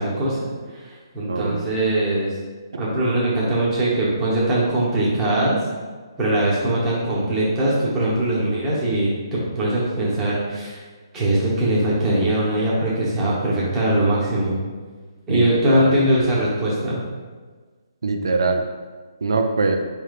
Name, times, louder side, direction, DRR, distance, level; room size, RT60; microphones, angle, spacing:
voice 1, 0.0-2.3 2.8-5.6 6.2-9.1 9.5-10.8 11.1-14.6 15.3-17.0, right 1 dB, 15° right, -7 dB, 0.9 m, -21 dB
voice 2, 18.0-18.6 19.2-19.8, right 3 dB, 85° right, 4 dB, 0.4 m, -22 dB
4.3 x 3.3 x 2.4 m, 1.4 s
hypercardioid pair, 160°, 2 cm